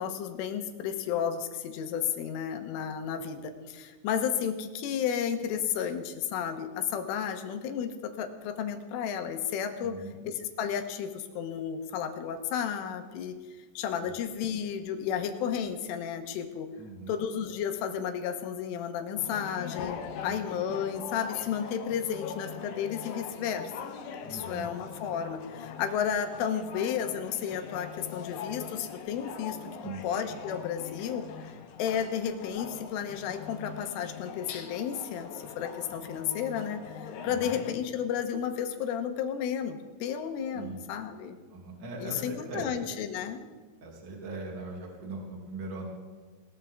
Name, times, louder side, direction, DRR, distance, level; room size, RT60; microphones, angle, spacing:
voice 1, 0.0-13.4 13.8-16.7 17.1-23.7 24.3-29.6 30.0-41.4 42.0-43.5, left 8 dB, 85° left, 7 dB, 3.6 m, -32 dB
voice 2, 9.8-10.1 14.0-14.1 16.8-17.1 20.2-20.4 24.2-24.7 29.8-30.0 37.2-37.6 40.5-40.8 41.5-42.7 43.8-45.8, right 3 dB, 25° right, -1 dB, 2.8 m, -40 dB
sound 1, 19.2-37.7, left 7 dB, 70° left, 2.3 m, -42 dB
20.5 x 18.5 x 3.8 m, 1.4 s
omnidirectional pair, 5.7 m